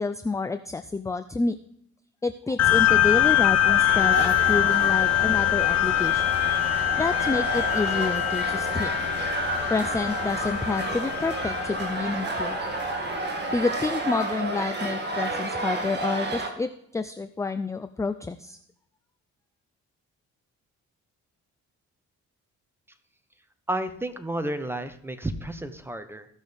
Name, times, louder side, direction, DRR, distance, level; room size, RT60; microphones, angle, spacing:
voice 1, 0.0-1.6 2.2-6.4 7.0-8.9 9.7-12.6 13.5-18.6, left 3 dB, 10° left, 11 dB, 0.4 m, -29 dB
sound 1, 2.6-13.5, left 12 dB, 55° left, 1.0 m, -24 dB
sound 2, 3.9-16.5, right 2 dB, 35° right, 1.9 m, -31 dB
voice 2, 23.7-26.3, right 1 dB, 10° right, 9 dB, 1.0 m, -31 dB
16.0 x 6.2 x 3.5 m, 0.71 s
cardioid pair, 90°, 30 cm